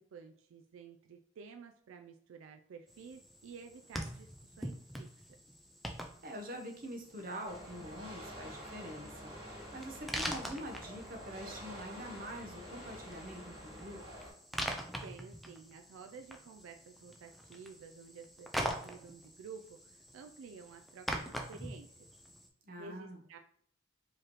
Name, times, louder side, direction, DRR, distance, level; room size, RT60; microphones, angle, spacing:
voice 1, 0.1-5.1 15.0-21.9 22.8-23.4, right 5 dB, 85° right, 5 dB, 0.3 m, -52 dB
sound 1, 2.9-22.5, equal, ahead, 0.3 m, -44 dB
voice 2, 6.2-14.0 22.6-23.2, equal, 45° right, 2 dB, 0.8 m, -45 dB
sound 2, 7.4-14.3, equal, 25° right, 1.4 m, -48 dB
4.7 x 3.0 x 3.0 m, 0.63 s
head